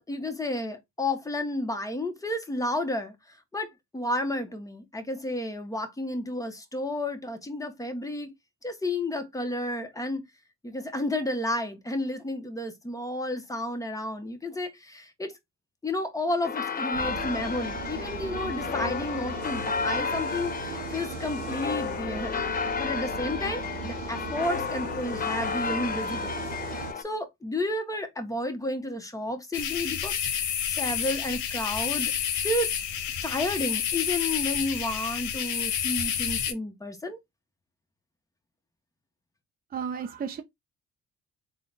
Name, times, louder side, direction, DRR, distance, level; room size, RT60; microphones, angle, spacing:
voice 1, 0.0-3.1 3.5-3.7 3.9-8.3 8.6-10.2 10.6-15.3 15.8-22.4 22.8-26.4 26.7-32.1 32.4-32.7 33.2-37.2, left 1 dB, 10° left, 1.0 m, -31 dB
sound 1, 16.4-27.0, left 5 dB, 30° left, 0.5 m, -32 dB
sound 2, 16.9-26.9, right 8 dB, 90° right, 0.6 m, -39 dB
sound 3, 29.5-36.5, left 9 dB, 75° left, 0.8 m, -29 dB
voice 2, 39.7-40.4, right 7 dB, 30° right, 0.5 m, -33 dB
3.8 x 2.2 x 3.9 m
cardioid pair, 90°, 30 cm